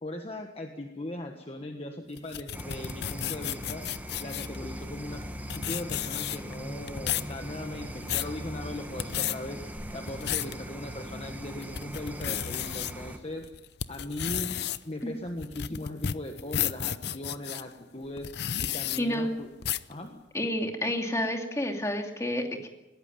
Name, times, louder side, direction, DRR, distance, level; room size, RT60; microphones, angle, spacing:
voice 1, 0.0-3.9 4.2-5.3 5.5-9.6 9.9-13.5 13.9-14.6 14.8-18.3 18.6-19.5 19.9-20.2, left 1 dB, 30° left, 4 dB, 1.5 m, -39 dB
sound 1, 2.2-4.6 5.2-5.3 5.5-6.5 6.9-7.3 7.8-8.3 8.9-9.4 9.9-10.5 11.0-11.1 11.6-12.9 13.4-17.6 18.2-19.0 19.6-19.9, left 10 dB, 60° left, 0.7 m, -32 dB
sound 2, 2.5-13.2, equal, 10° right, 1.6 m, -40 dB
voice 2, 19.0-19.3 20.3-22.7, left 1 dB, 15° left, 3 dB, 2.6 m, -29 dB
20.5 x 17.0 x 9.3 m, 1.0 s
head